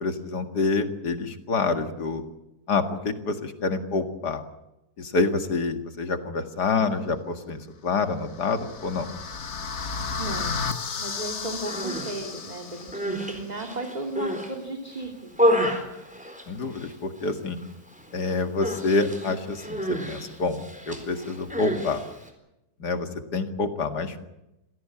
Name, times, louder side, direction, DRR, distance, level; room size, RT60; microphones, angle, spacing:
voice 1, 0.0-2.2 2.7-4.4 5.0-9.1 16.5-17.6 18.1-20.6 20.9-22.0 22.8-24.3, left 3 dB, 75° left, 7 dB, 2.6 m, -27 dB
sound 1, 8.1-13.2, left 5 dB, 45° left, 1.5 m, -33 dB
voice 2, 9.8-15.6, right 2 dB, 25° right, 3 dB, 2.8 m, -36 dB
Human voice, 11.5-12.1 12.7-14.5 14.9-16.9 17.2-17.7 17.9-18.2 18.6-22.3, equal, 5° right, 4.1 m, -29 dB
27.0 x 17.0 x 8.7 m, 0.93 s
omnidirectional pair, 1.8 m